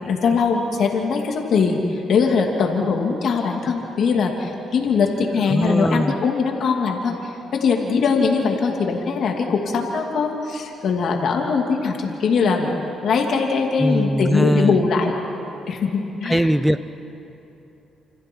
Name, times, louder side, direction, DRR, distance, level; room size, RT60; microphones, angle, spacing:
voice 1, 0.0-12.7 13.0-15.1 15.7-16.5, left 5 dB, 65° left, 1 dB, 2.8 m, -21 dB
voice 2, 5.5-6.1 13.8-14.9 16.3-16.8, equal, 5° right, 13 dB, 0.8 m, -20 dB
29.5 x 28.5 x 4.7 m, 3.0 s
cardioid pair, 90°, 0 cm